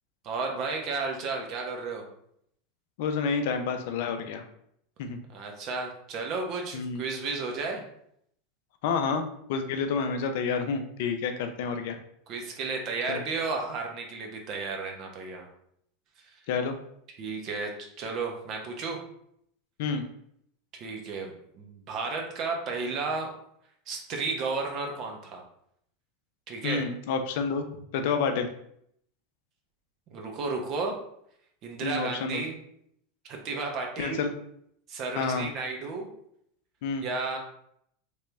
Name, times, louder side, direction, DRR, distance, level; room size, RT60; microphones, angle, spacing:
voice 1, 0.2-2.0 5.3-7.8 12.3-15.5 17.2-17.7 18.0-19.0 20.7-23.3 23.9-25.4 26.5-26.8 30.1-31.0 31.6-32.6 33.3-34.2 34.9-36.1 37.0-37.4, right 4 dB, 45° right, 1 dB, 0.9 m, -33 dB
voice 2, 3.0-4.4 5.0-5.2 6.7-7.0 8.8-9.2 9.5-12.0 13.1-13.2 16.5-16.8 19.8-20.0 26.6-27.7 27.9-28.5 31.8-32.4 34.0-34.3 35.2-35.5 36.8-37.1, left 5 dB, 65° left, 6 dB, 0.5 m, -29 dB
3.3 x 2.9 x 3.3 m, 0.71 s
hypercardioid pair, 90°, 0 cm